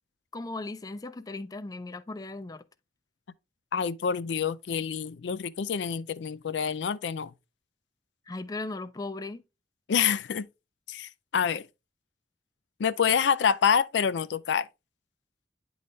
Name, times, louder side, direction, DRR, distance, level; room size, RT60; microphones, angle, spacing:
voice 1, 0.3-2.6 8.3-9.4, left 2 dB, 20° left, 0.4 m, -37 dB
voice 2, 3.7-7.3 9.9-10.5 10.9-11.6 12.8-14.7, left 7 dB, 80° left, 0.4 m, -27 dB
9.5 x 3.9 x 3.2 m
head